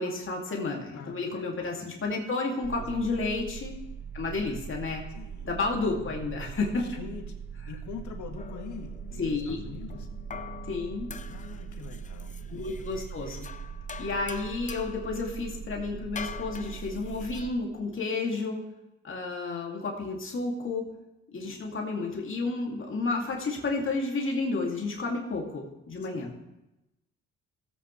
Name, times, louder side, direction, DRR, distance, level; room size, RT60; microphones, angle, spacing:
voice 1, 0.0-3.7 4.1-5.0 5.4-6.9 9.2-9.6 10.7-11.1 12.5-13.5 14.0-18.6 19.0-20.9 21.3-26.3, left 3 dB, 45° left, -1 dB, 2.4 m, -31 dB
voice 2, 0.9-2.0 2.8-3.4 5.1-5.5 6.0-6.2 6.8-7.4 7.7-10.1 11.3-12.8 26.0-26.4, left 6 dB, 75° left, 4 dB, 1.7 m, -45 dB
sound 1, 2.6-17.5, right 7 dB, 40° right, 1.5 m, -41 dB
sound 2, 8.4-17.5, left 6 dB, 25° left, 0.6 m, -45 dB
17.0 x 8.4 x 3.2 m, 0.95 s
cardioid pair, 90°, 30 cm